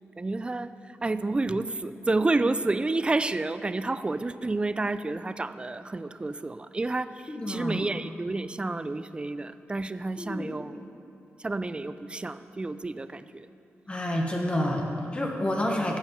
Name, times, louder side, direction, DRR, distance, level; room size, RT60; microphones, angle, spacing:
voice 1, 0.2-0.7 1.0-10.8 11.4-13.5, right 2 dB, 20° right, 13 dB, 0.4 m, -30 dB
voice 2, 7.3-7.8 10.2-10.5 13.9-16.0, left 1 dB, 25° left, 1 dB, 1.3 m, -29 dB
11.5 x 6.3 x 8.0 m, 2.7 s
cardioid pair, 95°, 5 cm